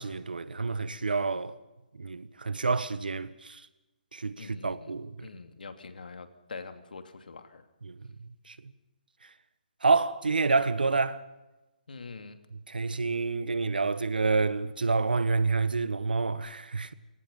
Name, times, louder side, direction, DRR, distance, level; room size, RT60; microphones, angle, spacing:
voice 1, 0.0-1.6 2.0-3.6 4.1-5.3 7.8-8.6 9.8-11.2 12.7-16.9, right 4 dB, 90° right, 1.5 m, -28 dB
voice 2, 4.4-4.9 5.2-7.6 11.9-12.4, left 4 dB, 75° left, 2.7 m, -44 dB
29.5 x 18.0 x 5.6 m
hypercardioid pair, 150°, 5 cm